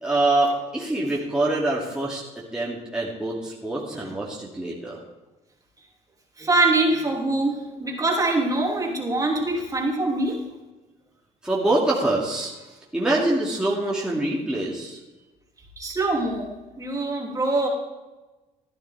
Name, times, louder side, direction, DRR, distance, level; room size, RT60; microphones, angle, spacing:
voice 1, 0.0-2.2 2.5-5.0 11.4-12.5 12.9-15.0, right 2 dB, 5° right, -5 dB, 2.4 m, -25 dB
voice 2, 6.4-10.4 15.8-16.5 16.8-17.7, right 2 dB, 20° right, -1 dB, 2.8 m, -23 dB
15.0 x 10.5 x 3.5 m, 1.1 s
cardioid pair, 100°, 15 cm